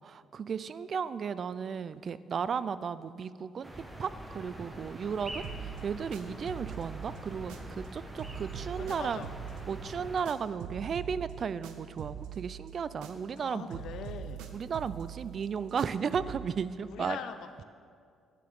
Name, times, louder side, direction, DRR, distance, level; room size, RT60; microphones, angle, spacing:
voice 1, 0.0-3.7 4.0-9.2 9.7-13.8 14.5-17.2, right 6 dB, 50° right, 16 dB, 0.3 m, -34 dB
sound 1, 3.6-10.2, right 1 dB, 15° right, 1.2 m, -44 dB
sound 2, 5.4-7.9 8.2-13.4 13.7-16.5, right 9 dB, 85° right, 0.7 m, -44 dB
voice 2, 8.8-9.3 13.4-14.5 16.8-17.6, left 8 dB, 75° left, 10 dB, 0.4 m, -42 dB
11.5 x 9.3 x 3.6 m, 2.2 s
supercardioid pair, 75°, 0 cm